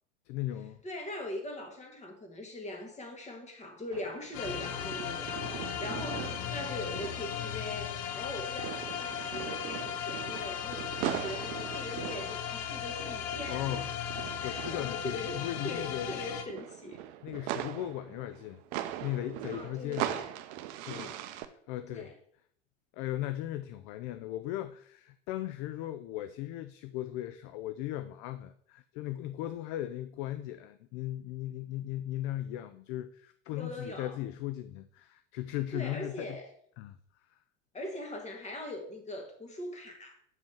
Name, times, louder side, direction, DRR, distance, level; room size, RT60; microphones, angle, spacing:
voice 1, 0.3-0.8 13.5-16.2 17.2-18.6 19.0-20.1 20.8-22.1 22.9-36.4 36.8-37.0, left 13 dB, 40° left, 0.4 m, -37 dB
voice 2, 0.8-13.7 14.4-15.3 15.6-17.0 19.5-20.3 20.8-21.5 21.9-22.1 33.5-34.2 35.7-36.5 37.7-40.2, left 1 dB, 20° left, 1.8 m, -41 dB
sound 1, 3.9-8.3 8.6-21.5, right 12 dB, 45° right, 0.6 m, -41 dB
sound 2, 4.3-16.4, left 8 dB, 55° left, 0.9 m, -37 dB
7.6 x 5.2 x 4.5 m
figure-of-eight pair, 80°, 35 cm